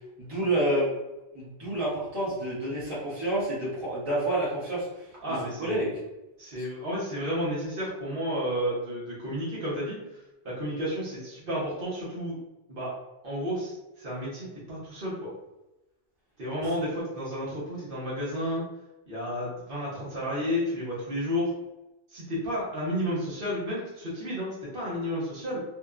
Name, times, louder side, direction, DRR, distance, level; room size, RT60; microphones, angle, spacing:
voice 1, 0.2-0.9 1.3-5.9, right 1 dB, 30° right, -8 dB, 1.0 m, -29 dB
voice 2, 5.2-6.0 6.4-10.0 10.4-12.4 12.7-12.9 13.2-15.3 16.4-18.6 19.1-21.5 22.1-25.6, equal, 65° right, -8 dB, 1.1 m, -31 dB
2.8 x 2.1 x 2.3 m, 1.0 s
omnidirectional pair, 1.0 m